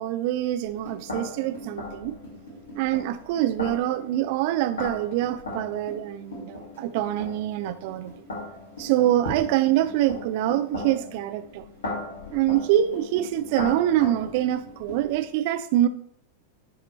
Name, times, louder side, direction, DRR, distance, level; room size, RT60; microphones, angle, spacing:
voice 1, 0.0-2.2 2.7-8.1 8.8-11.6 12.3-15.9, right 13 dB, 50° right, 0.5 m, -25 dB
sound 1, 0.6-15.3, left 2 dB, 70° left, 2.3 m, -38 dB
10.5 x 4.5 x 3.1 m
figure-of-eight pair, 90°, 0 cm